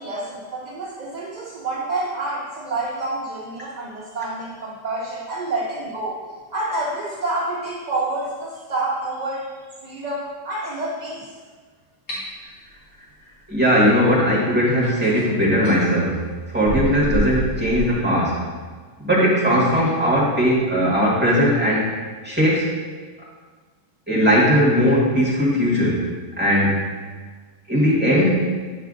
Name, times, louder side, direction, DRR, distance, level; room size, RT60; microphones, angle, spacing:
voice 1, 0.0-6.2 6.5-9.5 9.8-11.3, right 2 dB, 50° right, -4 dB, 0.5 m, -28 dB
sound 1, 12.1-12.2 14.1-14.2 14.8-15.9 16.7-17.9, right 1 dB, 45° left, 1.8 m, -27 dB
voice 2, 13.5-16.2 16.5-18.4 19.0-21.9 22.2-22.7 24.1-26.1 26.4-26.9 27.7-28.5, equal, 5° right, -6 dB, 1.4 m, -18 dB
9.0 x 5.5 x 2.5 m, 1.5 s
omnidirectional pair, 1.6 m